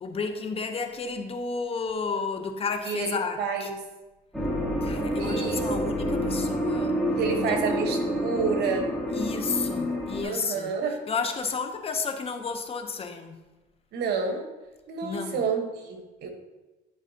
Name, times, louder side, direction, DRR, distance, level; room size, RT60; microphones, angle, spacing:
voice 1, 0.0-3.7 4.8-6.9 7.4-7.6 9.1-10.7 11.1-13.3 15.0-15.4, left 5 dB, 35° left, 6 dB, 0.8 m, -32 dB
voice 2, 2.8-3.8 5.2-6.0 7.2-8.9 10.2-11.0 13.9-14.5 14.9-16.3, right 5 dB, 75° right, 4 dB, 1.2 m, -29 dB
sound 1, 4.3-10.2, equal, ahead, 1.9 m, -28 dB
11.0 x 4.8 x 2.8 m, 1.1 s
cardioid pair, 110°, 17 cm